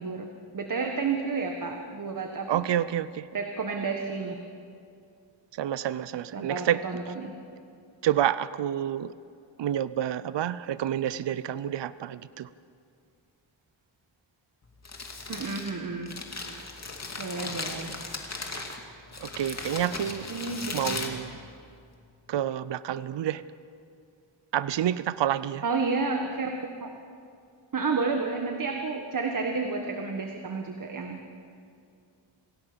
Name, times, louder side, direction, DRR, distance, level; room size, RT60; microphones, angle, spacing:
voice 1, 0.0-2.6 3.3-4.3 6.3-7.3 15.3-16.1 17.2-17.9 20.3-21.0 25.6-26.5 26.8-26.9 27.7-31.2, right 4 dB, 45° right, 3 dB, 1.6 m, -31 dB
voice 2, 2.5-3.3 5.6-6.8 8.0-9.1 9.6-12.5 19.2-20.3 20.7-21.4 22.3-23.4 24.5-25.6, right 11 dB, 65° right, 16 dB, 0.6 m, -28 dB
Crumpling crinkling, 14.6-21.9, left 3 dB, 35° left, 2.5 m, -37 dB
27.5 x 16.5 x 6.9 m, 2.4 s
wide cardioid pair, 125°, 45 cm